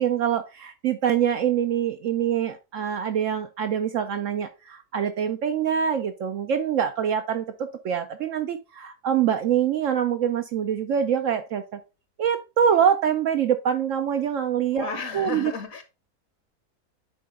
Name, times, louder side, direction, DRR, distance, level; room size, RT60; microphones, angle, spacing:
voice 1, 0.0-11.8 12.2-14.9 15.1-15.5, right 8 dB, 65° right, 7 dB, 0.9 m, -25 dB
voice 2, 14.7-15.8, left 4 dB, 65° left, 7 dB, 1.5 m, -33 dB
9.4 x 3.8 x 3.5 m, 0.29 s
omnidirectional pair, 1.6 m